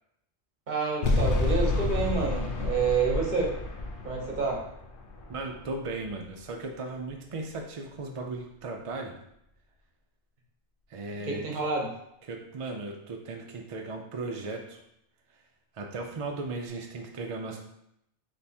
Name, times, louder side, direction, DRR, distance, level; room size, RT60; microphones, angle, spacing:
voice 1, 0.7-3.5 4.0-4.6 11.2-11.9, right 4 dB, 45° right, -1 dB, 0.9 m, -28 dB
sound 1, 1.0-6.2, left 2 dB, 55° left, 0.7 m, -30 dB
voice 2, 5.3-9.1 10.9-11.6 12.3-14.8 15.7-17.6, right 3 dB, 60° right, 2 dB, 0.3 m, -36 dB
3.4 x 3.0 x 4.1 m, 0.78 s
omnidirectional pair, 1.2 m